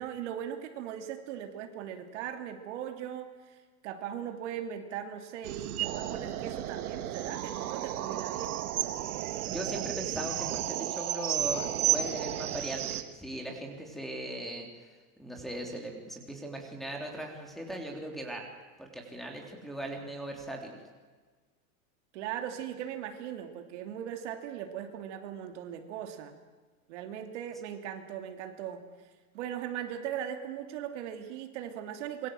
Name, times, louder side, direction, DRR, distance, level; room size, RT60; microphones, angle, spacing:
voice 1, 0.0-3.6 3.8-8.5 22.1-26.3 26.9-28.8 29.3-32.3, right 9 dB, 55° right, 5 dB, 2.9 m, -39 dB
sound 1, 5.4-13.0, right 11 dB, 90° right, 2.1 m, -33 dB
voice 2, 9.5-14.7 15.2-18.4 18.8-20.8, right 1 dB, ahead, -1 dB, 3.4 m, -39 dB
26.0 x 23.0 x 7.8 m, 1.4 s
supercardioid pair, 165°, 43 cm